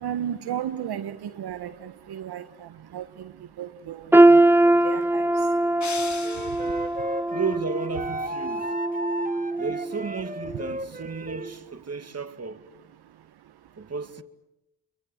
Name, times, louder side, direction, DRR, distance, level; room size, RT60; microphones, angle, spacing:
voice 1, 0.0-2.4 2.9-3.0 3.6-4.0 4.8-5.3, right 10 dB, 70° right, 1.4 m, -33 dB
sound 1, 4.1-10.1 10.5-10.7 11.4-11.5, right 2 dB, 5° right, 1.0 m, -21 dB
sound 2, 5.8-7.1, left 6 dB, 45° left, 2.1 m, -38 dB
Wind instrument woodwind instrument, 6.2-11.5, right 1 dB, 20° right, 2.0 m, -35 dB
voice 2, 7.3-8.7 9.6-12.7 13.8-14.2, right 5 dB, 40° right, 2.2 m, -33 dB
29.5 x 24.0 x 8.0 m
supercardioid pair, 45°, 40 cm